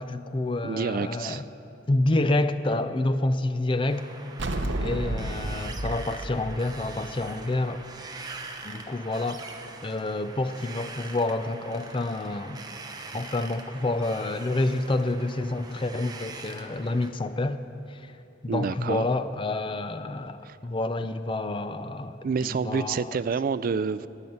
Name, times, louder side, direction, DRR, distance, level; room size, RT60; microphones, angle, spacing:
voice 1, 0.0-1.5 1.9-4.1 4.8-7.8 8.6-9.4 9.8-12.6 13.1-17.6 17.9-18.1 18.4-23.2, left 2 dB, 25° left, 11 dB, 0.4 m, -28 dB
voice 2, 0.6-1.4 18.5-19.1 20.4-20.6 22.2-24.1, right 5 dB, 45° right, 15 dB, 0.3 m, -28 dB
Wind, 3.9-17.1, right 3 dB, 20° right, 0.8 m, -43 dB
sound 1, 4.4-7.8, right 1 dB, 65° right, 0.9 m, -32 dB
17.0 x 5.7 x 9.5 m, 2.8 s
head